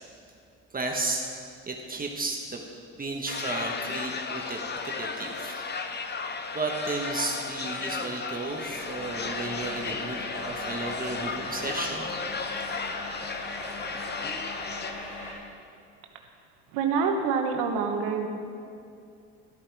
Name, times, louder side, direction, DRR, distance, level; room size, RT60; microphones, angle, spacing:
voice 1, 0.7-1.2 1.7-2.6 3.0-5.6 6.5-12.1, right 3 dB, 25° right, 1 dB, 1.3 m, -33 dB
sound 1, 3.3-14.9, left 4 dB, 30° left, 1.0 m, -34 dB
sound 2, 8.4-15.3, left 2 dB, 90° left, 3.4 m, -39 dB
voice 2, 16.7-18.3, right 5 dB, 80° right, 3 dB, 1.2 m, -26 dB
13.0 x 8.7 x 4.8 m, 2.5 s
supercardioid pair, 75°, 33 cm